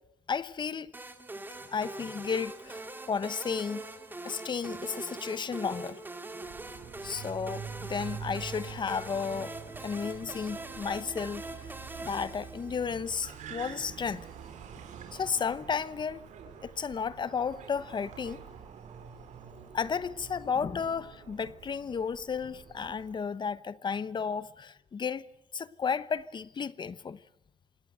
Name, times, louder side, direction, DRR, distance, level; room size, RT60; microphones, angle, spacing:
voice 1, 0.3-0.9 1.7-3.8 4.2-6.0 7.0-9.5 9.8-11.4 12.0-14.3 15.1-16.2 16.6-18.4 19.7-25.3 25.5-27.2, left 6 dB, 40° left, 0.9 m, -33 dB
sound 1, 0.9-13.1, right 2 dB, 15° right, 2.3 m, -43 dB
Car, 6.4-23.2, right 7 dB, 80° right, 4.7 m, -46 dB
26.5 x 19.0 x 7.9 m
cardioid pair, 110°, 12 cm